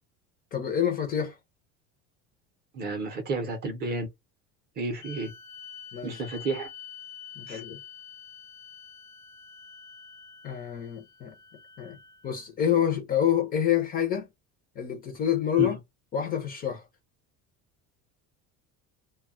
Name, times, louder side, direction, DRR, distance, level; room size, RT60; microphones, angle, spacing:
voice 1, 0.5-1.4 5.9-6.2 7.4-7.8 10.4-11.3 11.8-12.0 12.2-14.3 14.8-15.8 16.1-16.9, left 9 dB, 25° left, 0.4 m, -27 dB
voice 2, 2.7-4.1 4.8-5.3 6.0-6.7 7.5-7.6 15.6-15.7, right 3 dB, 30° right, 0.5 m, -31 dB
sound 1, 5.0-12.5, left 8 dB, 80° left, 0.8 m, -47 dB
2.2 x 2.0 x 3.5 m
cardioid pair, 170°, 36 cm